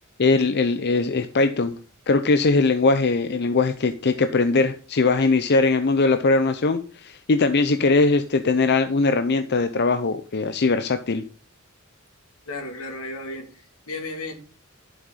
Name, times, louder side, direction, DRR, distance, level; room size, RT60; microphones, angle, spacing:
voice 1, 0.2-1.7 2.1-11.2, left 3 dB, 50° left, 9 dB, 0.7 m, -20 dB
voice 2, 12.5-14.3, left 2 dB, 85° left, 4 dB, 2.8 m, -34 dB
11.5 x 7.4 x 4.2 m, 0.39 s
head